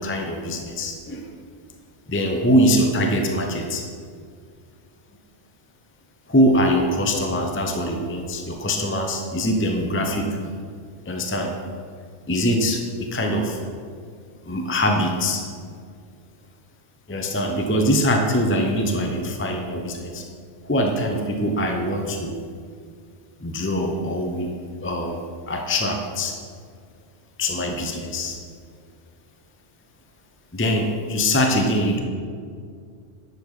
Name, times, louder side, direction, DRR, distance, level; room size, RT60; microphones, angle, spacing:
voice 1, 0.0-1.3 2.1-3.8 6.3-10.4 11.1-11.6 12.3-13.6 14.4-15.4 17.1-20.2 20.6-22.4 23.4-24.5 24.8-26.3 27.4-28.4 30.5-32.0, equal, 10° left, 2 dB, 0.8 m, -23 dB
11.0 x 7.5 x 4.9 m, 2.1 s
omnidirectional pair, 1.2 m